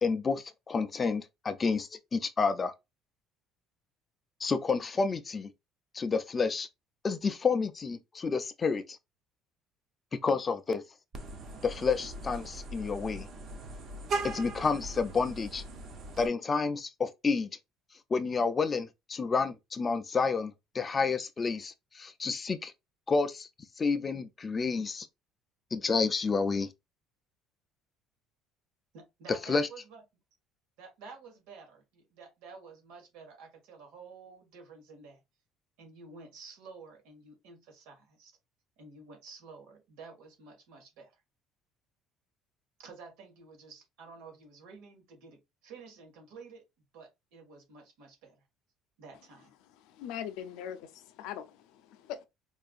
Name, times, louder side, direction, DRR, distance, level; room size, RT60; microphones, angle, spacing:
voice 1, 0.0-2.7 4.4-5.5 5.9-6.7 7.0-9.0 10.1-10.8 11.6-13.3 14.2-15.6 16.2-17.5 18.1-22.7 23.1-23.5 23.8-25.1 25.7-26.7 29.5-29.7, left 4 dB, 20° left, 0.4 m, -30 dB
Vehicle horn car horn honking, 11.1-16.3, right 2 dB, 40° right, 0.7 m, -39 dB
voice 2, 28.9-30.0 30.8-35.2 35.8-38.3 38.8-41.2 42.8-46.6 46.9-48.4 49.0-49.5, right 4 dB, 85° right, 1.6 m, -51 dB
voice 3, 49.8-52.2, left 10 dB, 80° left, 0.5 m, -41 dB
4.5 x 2.5 x 2.4 m
cardioid pair, 165°, 0 cm